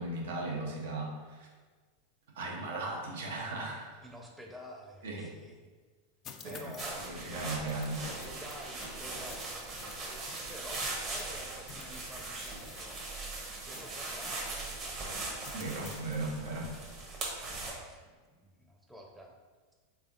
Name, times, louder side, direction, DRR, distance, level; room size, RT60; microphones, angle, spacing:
voice 1, 0.0-1.5 2.4-4.0 5.0-5.3 6.4-8.1 15.5-16.7, right 2 dB, 80° right, -1 dB, 0.8 m, -37 dB
voice 2, 4.0-5.7 6.4-7.8 8.2-14.7 15.5-15.6 17.6-19.3, equal, 5° right, 0 dB, 0.6 m, -50 dB
sound 1, 6.2-7.1 7.7-11.4 11.7-14.8 15.4-16.3, left 7 dB, 35° left, 0.3 m, -52 dB
sound 2, 6.8-17.7, right 2 dB, 35° right, 0.9 m, -40 dB
3.4 x 3.4 x 2.5 m, 1.4 s
hypercardioid pair, 110°, 0 cm